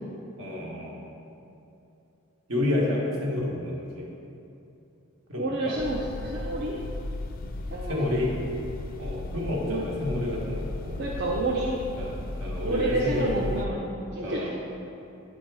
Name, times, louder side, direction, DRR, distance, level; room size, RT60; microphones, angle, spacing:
voice 1, 0.4-1.0 2.5-4.1 5.3-5.8 7.8-8.3 9.0-11.1 12.0-12.1 12.4-13.8 14.2-14.5, left 2 dB, 65° right, -3 dB, 1.4 m, -30 dB
voice 2, 5.4-6.7 7.7-8.1 9.6-9.9 11.0-11.8 12.6-13.8 14.1-14.5, right 2 dB, 50° right, -4 dB, 0.6 m, -29 dB
sound 1, 5.8-13.7, left 2 dB, 40° left, 0.4 m, -36 dB
8.9 x 4.1 x 4.7 m, 2.8 s
head